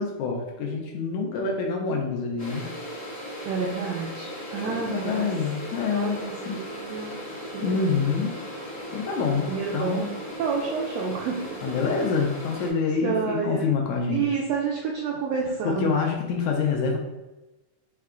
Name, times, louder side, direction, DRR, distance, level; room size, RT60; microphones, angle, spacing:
voice 1, 0.0-2.7 4.7-6.6 7.6-8.4 8.9-9.5 9.7-10.2 11.6-14.2 15.7-17.0, left 5 dB, 80° left, 1 dB, 1.9 m, -26 dB
sound 1, 2.4-12.7, equal, 40° left, 0.6 m, -37 dB
voice 2, 3.4-5.3 5.9-7.2 7.5-7.9 9.5-10.0 10.4-11.6 13.0-13.7 14.1-15.9, right 5 dB, 90° right, -2 dB, 1.5 m, -29 dB
5.6 x 2.3 x 3.7 m, 1.0 s
omnidirectional pair, 3.5 m